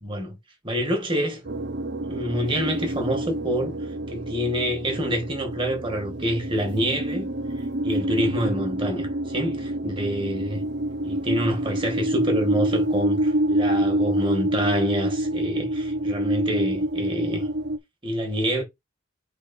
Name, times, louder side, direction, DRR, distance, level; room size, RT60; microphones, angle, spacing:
voice 1, 0.0-0.4 0.6-1.4 2.1-3.7 4.1-7.3 7.8-10.7 11.0-17.5 18.0-18.6, equal, 25° right, 2.0 m, -27 dB
sound 1, 1.4-17.8, right 1 dB, 55° right, 0.8 m, -27 dB
5.1 x 4.2 x 4.4 m
head